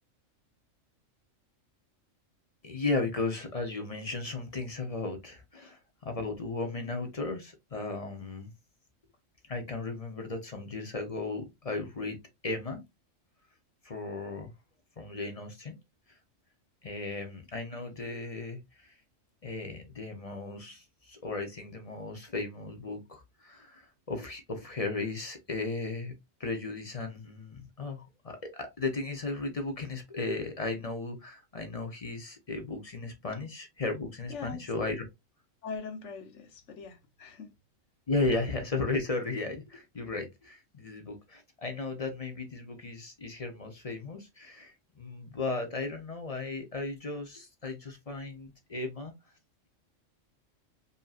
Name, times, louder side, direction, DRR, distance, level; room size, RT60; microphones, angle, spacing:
voice 1, 2.6-8.5 9.5-12.8 13.8-14.5 15.0-15.8 16.8-18.9 19.4-26.1 26.4-35.0 38.1-49.1, left 3 dB, 35° left, 0.7 m, -35 dB
voice 2, 34.3-34.6 35.6-37.5, left 5 dB, 65° left, 1.2 m, -41 dB
5.4 x 2.8 x 2.4 m
omnidirectional pair, 1.3 m